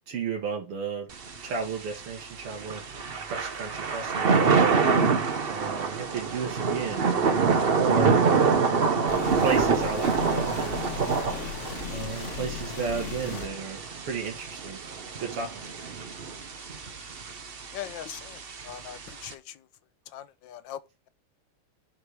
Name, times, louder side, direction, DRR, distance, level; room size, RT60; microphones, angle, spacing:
voice 1, 0.1-1.1 1.4-2.9 3.3-4.7 4.9-5.1 5.4-8.9 9.4-10.8 11.9-14.8 15.2-15.9, right 5 dB, 85° right, 2.3 m, -34 dB
Thunder / Rain, 1.1-19.3, right 5 dB, 55° right, 0.6 m, -27 dB
sound 1, 9.1-13.5, left 7 dB, 40° left, 1.2 m, -37 dB
voice 2, 17.7-19.7 20.1-20.8, left 11 dB, 70° left, 1.3 m, -41 dB
10.5 x 4.9 x 4.8 m
omnidirectional pair, 2.4 m